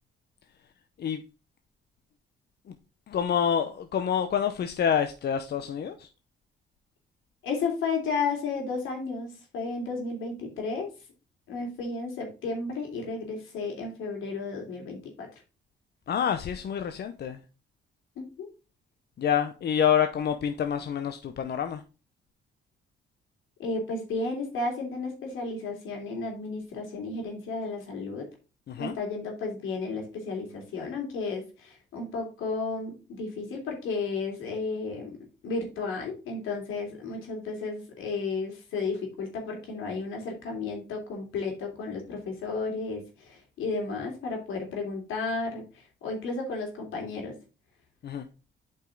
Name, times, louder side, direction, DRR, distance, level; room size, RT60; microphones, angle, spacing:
voice 1, 3.1-6.1 16.1-17.4 19.2-21.8 28.7-28.9 48.0-48.2, left 8 dB, 55° left, 0.8 m, -27 dB
voice 2, 7.4-10.9 11.5-15.3 18.2-18.5 23.6-28.3 28.8-35.2 35.4-47.3, left 4 dB, 85° left, 3.1 m, -33 dB
8.1 x 5.4 x 3.9 m
cardioid pair, 90°, 20 cm